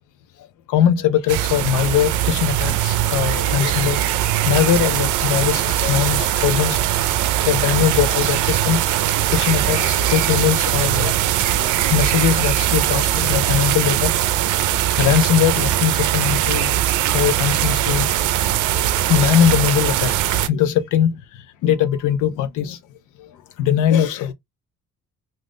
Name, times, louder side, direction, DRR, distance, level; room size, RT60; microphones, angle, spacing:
voice 1, 0.7-4.2 4.4-6.9 7.4-9.0 9.3-11.2 11.5-14.1 15.0-16.7 17.1-18.2 18.7-20.1 20.4-21.1 21.6-22.8 23.6-24.3, left 9 dB, 90° left, 0.6 m, -20 dB
sound 1, 1.3-20.5, right 12 dB, 80° right, 0.5 m, -20 dB
2.5 x 2.5 x 3.4 m
cardioid pair, 90°, 30 cm